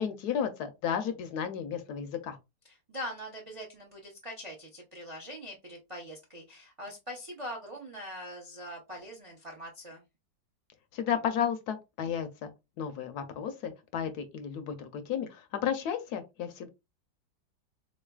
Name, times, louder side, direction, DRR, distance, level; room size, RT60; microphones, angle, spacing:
voice 1, 0.0-2.4 10.9-12.5 12.8-16.7, left 8 dB, 70° left, 1.0 m, -33 dB
voice 2, 2.6-10.0, equal, 50° right, 0.4 m, -42 dB
3.8 x 3.1 x 2.3 m
omnidirectional pair, 1.9 m